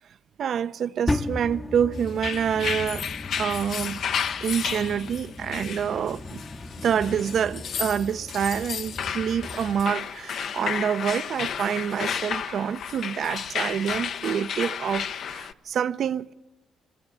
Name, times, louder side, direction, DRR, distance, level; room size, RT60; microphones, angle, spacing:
voice 1, 0.4-3.1 3.4-4.0 4.4-6.4 6.8-16.3, right 8 dB, 60° right, 0.7 m, -27 dB
sound 1, 1.1-9.9, left 2 dB, 15° left, 0.8 m, -36 dB
sound 2, 2.1-15.5, left 7 dB, 65° left, 0.9 m, -32 dB
25.5 x 18.0 x 10.0 m
cardioid pair, 90°, 0 cm